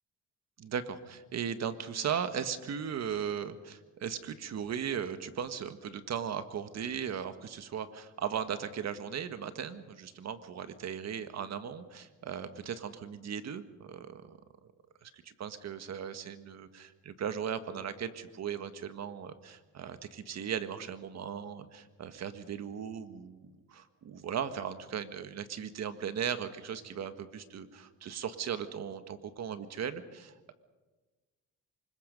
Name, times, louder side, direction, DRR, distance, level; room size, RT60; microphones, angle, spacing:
voice 1, 0.6-14.4 15.0-30.5, right 8 dB, 60° right, 10 dB, 1.7 m, -37 dB
24.5 x 21.5 x 5.3 m, 1.3 s
cardioid pair, 90°, 30 cm